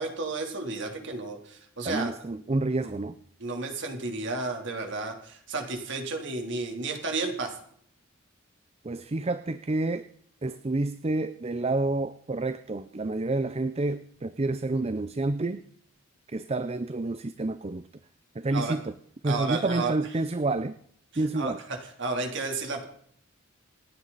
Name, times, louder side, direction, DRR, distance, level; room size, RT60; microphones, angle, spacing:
voice 1, 0.0-2.1 2.8-2.9 3.4-7.6 18.5-18.7 19.2-19.9 21.3-22.9, right 3 dB, 60° right, 3 dB, 3.3 m, -32 dB
voice 2, 1.8-3.2 8.8-10.1 10.4-15.6 16.3-17.9 18.3-18.9 19.2-20.8 21.2-21.6, right 2 dB, 30° right, 12 dB, 0.5 m, -29 dB
28.0 x 9.7 x 4.1 m, 0.65 s
head